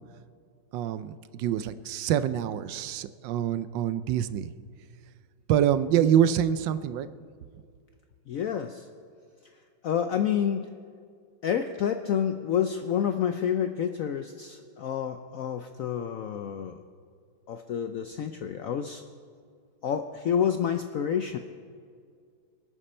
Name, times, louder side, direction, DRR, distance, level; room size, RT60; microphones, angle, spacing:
voice 1, 0.7-4.5 5.5-7.1, right 10 dB, 80° right, 13 dB, 1.3 m, -26 dB
voice 2, 8.3-8.9 9.8-10.7 11.4-16.8 17.5-19.0 19.8-21.4, left 8 dB, 75° left, 7 dB, 0.7 m, -29 dB
24.0 x 10.0 x 4.3 m, 2.2 s
omnidirectional pair, 2.1 m